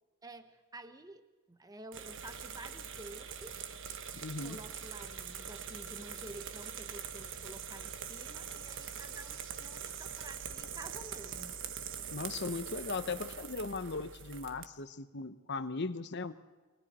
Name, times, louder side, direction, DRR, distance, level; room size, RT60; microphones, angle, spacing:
voice 1, 0.2-3.6 4.4-11.6, right 2 dB, 15° right, 9 dB, 0.9 m, -50 dB
sound 1, 1.9-14.7, right 7 dB, 60° right, 1.2 m, -43 dB
voice 2, 4.2-4.6 12.1-16.3, left 3 dB, 50° left, 11 dB, 1.0 m, -38 dB
28.5 x 23.5 x 4.3 m, 1.3 s
head